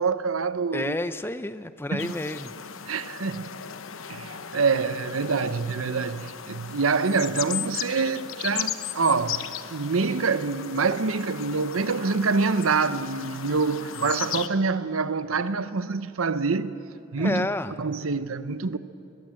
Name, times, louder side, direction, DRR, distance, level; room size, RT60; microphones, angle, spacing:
voice 1, 0.0-1.0 1.9-2.1 2.9-3.5 4.1-9.5 9.7-16.7 17.1-17.5 17.8-18.8, right 4 dB, 90° right, 0.9 m, -26 dB
voice 2, 0.7-2.5 17.2-17.8, left 1 dB, 10° left, 0.6 m, -30 dB
sound 1, 2.0-14.5, left 9 dB, 75° left, 0.9 m, -36 dB
21.5 x 21.0 x 7.7 m
head